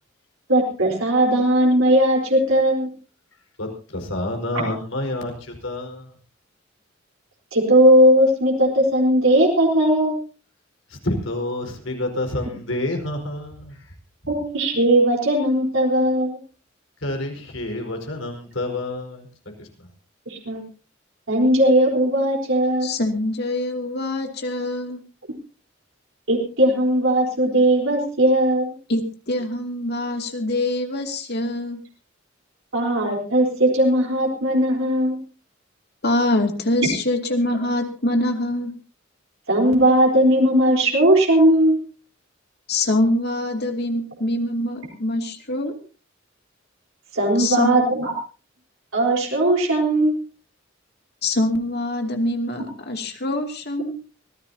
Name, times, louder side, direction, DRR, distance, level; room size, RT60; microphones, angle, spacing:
voice 1, 0.5-2.9 4.5-4.6 7.5-10.2 14.3-16.4 20.3-20.6 21.3-22.9 26.3-28.7 32.7-35.2 39.5-41.8 47.1-48.1 48.9-50.2, right 1 dB, 85° right, -1 dB, 4.2 m, -18 dB
voice 2, 3.9-6.1 11.0-13.7 17.0-19.2, left 1 dB, 75° left, 3 dB, 4.8 m, -28 dB
voice 3, 22.8-25.0 28.9-31.8 36.0-38.7 42.7-45.7 47.4-47.9 51.2-54.0, left 1 dB, 55° left, 4 dB, 2.6 m, -24 dB
24.5 x 16.0 x 2.8 m, 0.36 s
head